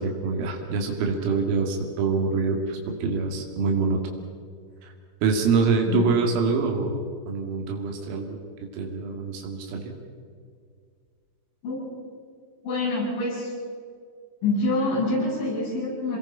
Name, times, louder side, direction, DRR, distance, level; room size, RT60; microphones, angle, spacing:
voice 1, 0.0-4.0 4.8-4.9 5.2-8.4 8.7-9.8, right 4 dB, 85° right, 2 dB, 5.1 m, -25 dB
voice 2, 12.7-13.5 14.4-16.2, left 2 dB, 65° left, -6 dB, 10.5 m, -26 dB
28.0 x 21.0 x 5.5 m, 2.1 s
omnidirectional pair, 5.9 m